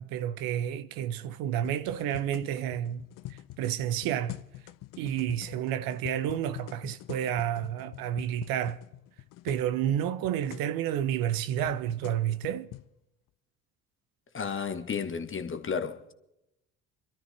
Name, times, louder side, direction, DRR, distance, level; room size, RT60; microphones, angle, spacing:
voice 1, 0.0-4.4 5.0-8.8 9.4-12.7, right 10 dB, 60° right, 0.8 m, -30 dB
sound 1, 1.6-9.7 9.9-10.0 10.2-10.7 11.3-12.9, left 16 dB, 55° left, 0.7 m, -44 dB
voice 2, 14.3-16.1, left 6 dB, 30° left, 1.3 m, -33 dB
25.5 x 13.0 x 3.3 m
hypercardioid pair, 55°, 39 cm